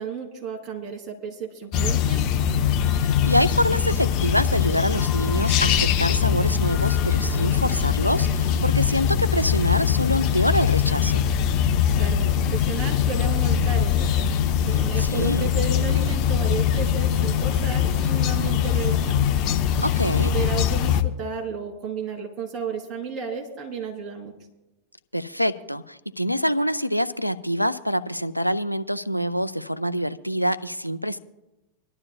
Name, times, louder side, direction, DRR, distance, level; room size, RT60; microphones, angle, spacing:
voice 1, 0.0-2.2 12.0-14.4 14.6-19.2 20.1-24.3, right 5 dB, 30° right, 1 dB, 3.1 m, -33 dB
sound 1, 1.7-21.0, left 8 dB, 40° left, 0.7 m, -22 dB
voice 2, 3.0-11.3 15.0-15.5 19.8-20.3 25.1-31.2, equal, 90° left, 11 dB, 0.5 m, -25 dB
24.5 x 12.0 x 2.3 m, 0.98 s
figure-of-eight pair, 90°, 0 cm